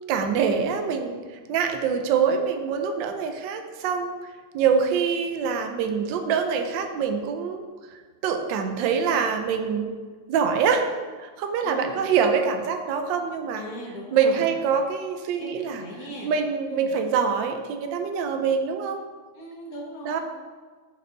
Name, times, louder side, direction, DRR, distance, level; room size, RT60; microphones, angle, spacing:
voice 1, 0.0-4.1 4.5-7.6 7.9-9.9 10.3-10.8 11.2-13.6 14.1-15.8 16.2-19.0 20.0-20.2, right 6 dB, 75° right, 5 dB, 1.2 m, -25 dB
voice 2, 11.6-12.0 13.6-14.5 15.4-15.5 15.7-16.3 16.7-16.9 19.3-20.2, equal, 50° left, -3 dB, 1.8 m, -39 dB
6.2 x 5.9 x 3.9 m, 1.5 s
omnidirectional pair, 2.2 m